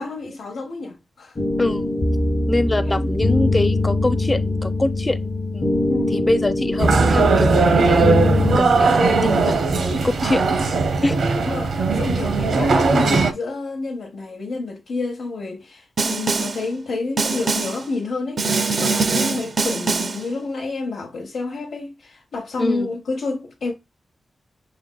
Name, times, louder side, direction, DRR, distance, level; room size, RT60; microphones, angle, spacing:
voice 1, 0.0-1.4 2.8-3.2 5.9-6.3 11.4-23.7, left 3 dB, 80° left, 0.9 m, -29 dB
sound 1, 1.4-8.6, left 2 dB, 35° left, 0.9 m, -22 dB
voice 2, 1.6-1.9 2.5-10.8 11.0-11.2 22.6-22.9, left 2 dB, 20° left, 0.4 m, -25 dB
sound 2, 6.8-13.3, right 4 dB, 90° right, 0.8 m, -18 dB
Snare drum, 16.0-16.7 17.2-17.9 18.4-20.3, right 3 dB, 50° right, 0.4 m, -23 dB
6.5 x 3.3 x 2.2 m
wide cardioid pair, 125°, 0 cm